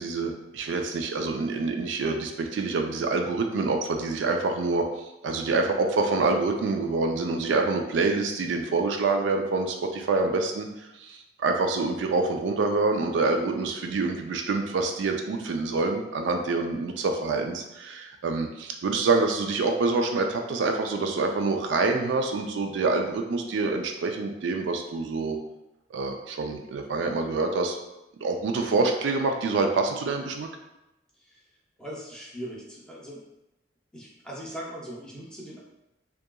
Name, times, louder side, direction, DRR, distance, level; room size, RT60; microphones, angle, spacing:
voice 1, 0.0-25.4 25.9-27.8 28.2-30.5, right 3 dB, 85° right, 4 dB, 0.3 m, -26 dB
voice 2, 31.8-33.3 33.9-35.6, equal, 5° left, -5 dB, 0.5 m, -40 dB
2.7 x 2.4 x 2.2 m, 0.91 s
head